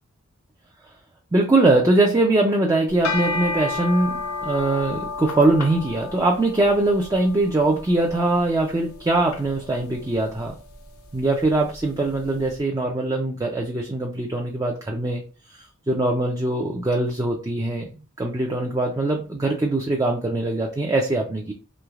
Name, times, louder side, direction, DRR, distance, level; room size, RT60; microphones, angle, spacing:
voice 1, 1.3-10.5 11.1-15.2 15.9-17.8 18.2-21.5, right 2 dB, 15° right, 0 dB, 0.3 m, -22 dB
sound 1, 2.9-12.2, left 4 dB, 75° left, 0.6 m, -33 dB
3.2 x 3.0 x 2.3 m, 0.35 s
head